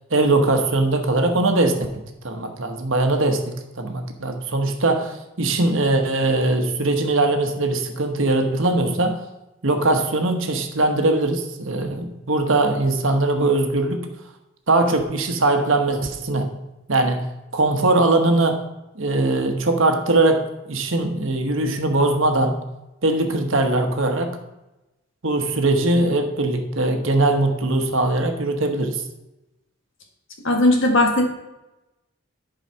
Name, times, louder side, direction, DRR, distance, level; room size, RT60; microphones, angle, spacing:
voice 1, 0.1-9.2 9.6-14.1 14.7-16.5 16.9-18.6 18.9-22.6 23.0-24.4 25.2-29.0, right 2 dB, 70° right, 5 dB, 1.2 m, -21 dB
voice 2, 30.4-31.3, left 1 dB, 60° left, 2 dB, 1.7 m, -17 dB
10.5 x 4.8 x 5.6 m, 0.96 s
head